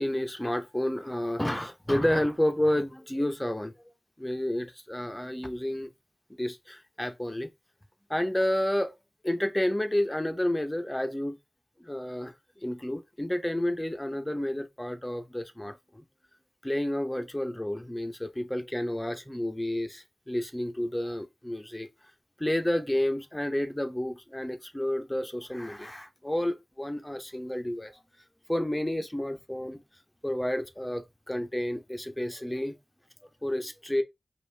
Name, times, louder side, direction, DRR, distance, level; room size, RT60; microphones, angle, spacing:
voice 1, 0.0-3.7 4.2-5.9 6.4-7.5 8.1-8.9 9.2-11.4 11.8-16.0 16.6-21.9 22.4-27.9 28.5-29.8 30.2-32.8 33.4-34.0, left 1 dB, 10° left, 0.7 m, -30 dB
5.1 x 2.4 x 3.2 m
wide cardioid pair, 85°, 0 cm